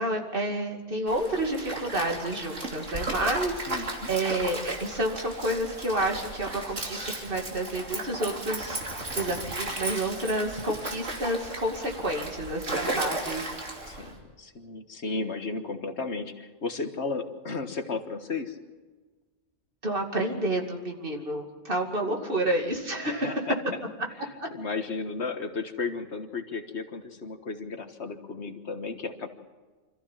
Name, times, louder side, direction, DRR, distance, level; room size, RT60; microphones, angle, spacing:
voice 1, 0.0-8.8 9.2-13.4 19.8-23.4 24.4-24.5, right 1 dB, 45° right, 2 dB, 2.7 m, -29 dB
Stream, 1.1-14.1, right 2 dB, 80° right, 3.2 m, -35 dB
voice 2, 3.7-4.1 13.8-18.5 22.0-22.3 23.0-23.6 24.2-29.3, left 4 dB, 65° left, 7 dB, 1.7 m, -34 dB
26.0 x 14.5 x 7.4 m, 1.4 s
omnidirectional pair, 1.3 m